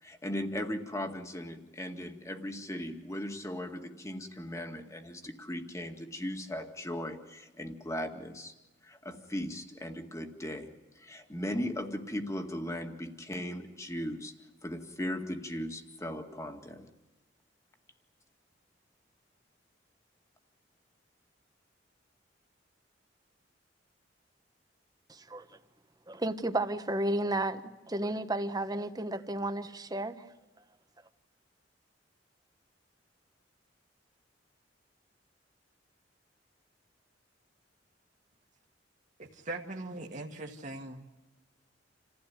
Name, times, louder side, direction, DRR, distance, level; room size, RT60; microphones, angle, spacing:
voice 1, 0.0-8.5 8.8-14.3 14.6-16.9, left 1 dB, 15° left, 2.1 m, -38 dB
voice 2, 25.1-25.5 26.1-30.2, right 1 dB, 20° right, 1.2 m, -32 dB
voice 3, 39.2-41.0, right 2 dB, 45° right, 1.8 m, -40 dB
28.5 x 16.0 x 9.6 m
head